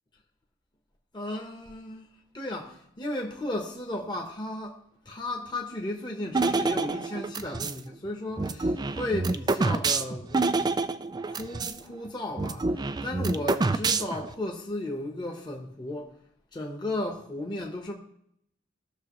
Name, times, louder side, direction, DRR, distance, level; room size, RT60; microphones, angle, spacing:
voice 1, 1.1-2.1 2.3-10.5 11.0-16.1 16.5-17.9, left 1 dB, 20° left, 1.1 m, -35 dB
sound 1, 6.3-7.8 8.4-11.8 12.1-12.2 12.4-14.3, right 3 dB, 20° right, 0.3 m, -27 dB
17.0 x 6.4 x 3.1 m
head